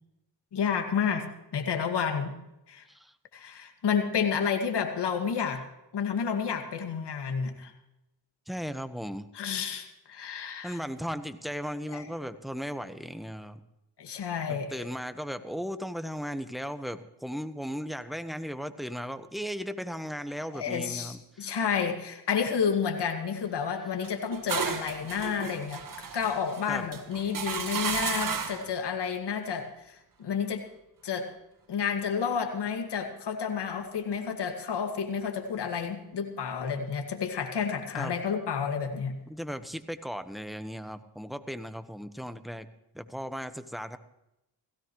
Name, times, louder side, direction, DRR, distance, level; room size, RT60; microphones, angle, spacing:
voice 1, 0.5-1.2 1.5-2.3 2.7-2.9 3.3-5.6 5.9-7.7 9.3-10.8 11.9-12.0 14.0-14.8 20.5-25.8 26.1-30.6 31.0-31.3 31.7-39.1, left 6 dB, 70° left, 4 dB, 2.2 m, -30 dB
voice 2, 8.5-9.3 10.6-13.6 14.5-21.6 26.7-26.8 37.9-38.1 39.3-42.7 42.9-44.0, equal, ahead, 11 dB, 1.2 m, -36 dB
sound 1, 24.0-28.7, right 6 dB, 50° right, 1.8 m, -33 dB
17.0 x 16.5 x 3.2 m, 0.88 s
cardioid pair, 60°, 43 cm